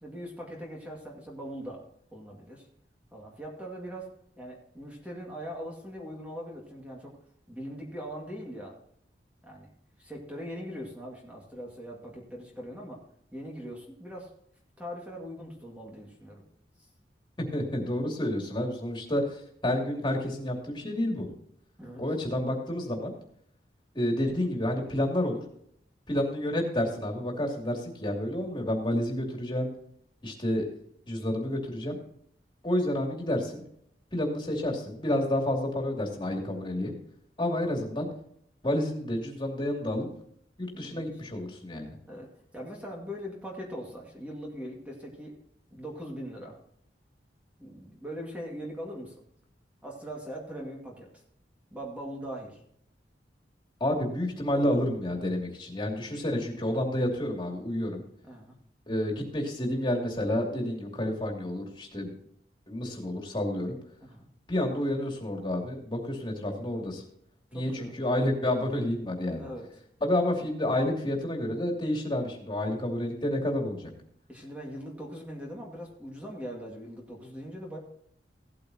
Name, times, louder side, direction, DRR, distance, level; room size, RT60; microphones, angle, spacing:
voice 1, 0.0-1.8 2.1-2.7 3.1-7.2 7.5-8.8 9.4-9.7 10.0-13.0 13.3-14.3 14.8-16.4 21.8-22.0 40.7-41.1 42.0-45.4 45.7-46.6 47.6-49.2 49.8-51.2 51.7-52.6 58.2-58.6 64.0-64.3 67.5-67.9 69.4-69.7 74.3-77.8, equal, 10° right, -2 dB, 2.1 m, -41 dB
voice 2, 17.4-21.3 22.0-23.1 23.9-25.4 26.1-29.7 30.2-30.7 31.1-32.0 32.6-33.6 34.1-36.9 37.4-38.1 38.6-40.1 40.6-41.9 53.8-58.0 58.9-62.1 62.7-63.8 64.5-67.0 67.5-69.4 70.0-73.9, left 1 dB, 30° left, 1 dB, 2.7 m, -29 dB
17.0 x 8.6 x 2.9 m, 0.66 s
head